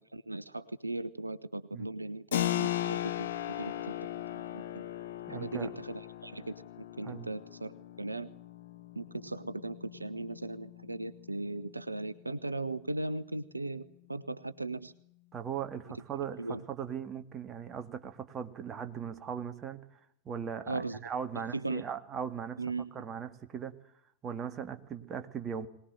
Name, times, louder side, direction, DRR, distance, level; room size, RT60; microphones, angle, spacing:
voice 1, 0.1-4.0 4.3-4.9 5.3-8.3 8.9-14.9 16.4-16.6 20.7-21.0 21.3-21.8 22.6-22.9, right 2 dB, 85° right, 15 dB, 0.9 m, -38 dB
Keyboard (musical), 2.3-12.7, left 12 dB, 60° left, 1.5 m, -38 dB
voice 2, 5.3-5.7 7.0-7.3 15.3-20.0 20.3-22.6 22.9-23.8 24.2-25.7, right 7 dB, 25° right, 9 dB, 2.1 m, -39 dB
22.5 x 19.5 x 9.1 m, 0.72 s
figure-of-eight pair, 90°, 0 cm